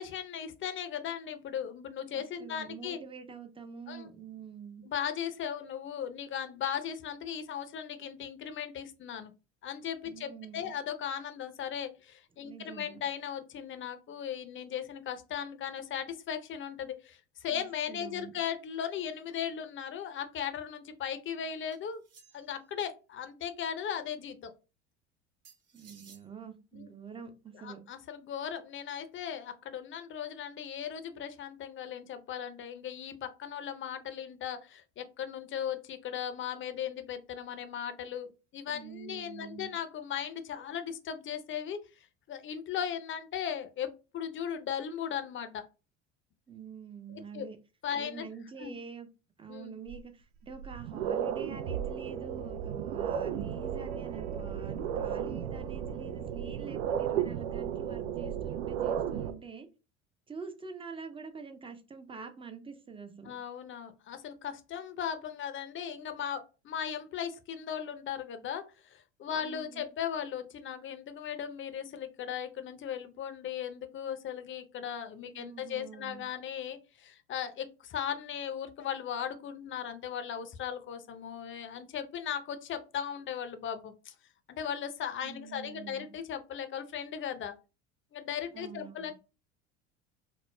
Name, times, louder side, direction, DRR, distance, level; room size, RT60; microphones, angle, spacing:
voice 1, 0.0-3.0 3.9-4.1 4.8-9.3 9.6-22.0 22.3-24.5 26.7-26.9 27.6-41.8 42.3-45.6 47.3-47.5 47.8-48.3 48.6-48.8 49.5-49.8 63.2-84.1 84.5-87.5 88.1-89.1, left 8 dB, 30° left, 0.6 m, -37 dB
voice 2, 2.1-4.8 10.0-10.7 12.4-13.0 17.5-18.3 25.7-27.8 38.7-39.7 46.5-47.6 47.9-49.1 49.4-59.7 60.3-63.3 69.4-69.9 75.3-76.2 85.2-86.1 88.5-89.1, right 5 dB, 15° right, 0.6 m, -46 dB
sound 1, 21.7-22.6 25.4-26.3, right 5 dB, 40° right, 1.3 m, -57 dB
sound 2, 49.9-50.0 50.5-59.3, right 9 dB, 75° right, 0.6 m, -34 dB
4.8 x 2.0 x 2.2 m
hypercardioid pair, 75°, 38 cm